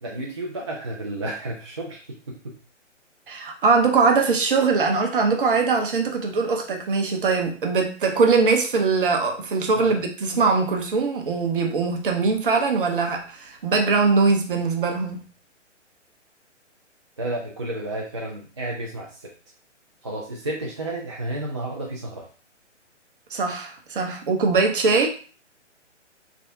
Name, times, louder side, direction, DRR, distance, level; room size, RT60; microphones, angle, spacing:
voice 1, 0.0-2.6 9.7-10.0 17.2-19.3 20.0-22.3, right 1 dB, 25° right, -3 dB, 0.4 m, -32 dB
voice 2, 3.3-15.2 23.3-25.1, right 4 dB, 45° right, 4 dB, 0.8 m, -21 dB
3.4 x 3.3 x 2.6 m, 0.38 s
figure-of-eight pair, 135°, 37 cm